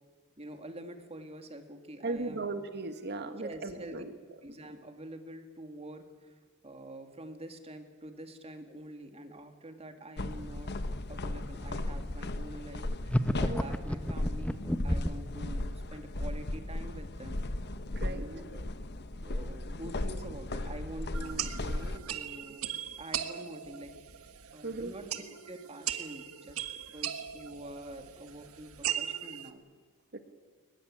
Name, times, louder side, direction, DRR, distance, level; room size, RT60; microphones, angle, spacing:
voice 1, 0.4-2.4 3.4-4.0 4.4-10.7 11.1-17.4 18.0-18.7 19.2-23.9 24.5-25.1 25.5-26.7 26.9-29.6, right 1 dB, 30° right, 6 dB, 2.4 m, -46 dB
voice 2, 2.0-4.1 13.4-13.7 18.0-18.3 24.6-24.9 30.1-30.2, right 3 dB, 50° right, 9 dB, 1.9 m, -37 dB
sound 1, 10.2-22.0, left 1 dB, 50° left, 1.3 m, -36 dB
sound 2, 13.1-15.3, equal, 5° left, 0.9 m, -30 dB
sound 3, 21.1-29.5, right 10 dB, 80° right, 1.6 m, -39 dB
22.0 x 20.5 x 8.9 m, 1.5 s
head